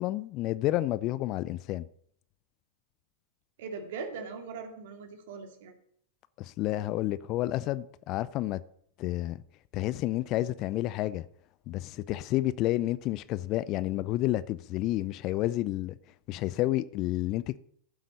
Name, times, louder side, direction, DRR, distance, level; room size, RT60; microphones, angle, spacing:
voice 1, 0.0-1.9 6.4-8.6 9.0-9.4 9.7-11.3 11.7-16.0 16.3-17.6, left 15 dB, 40° left, 0.6 m, -30 dB
voice 2, 3.6-5.7, right 5 dB, 55° right, 2.5 m, -40 dB
15.0 x 7.5 x 5.3 m
figure-of-eight pair, 95°, 0 cm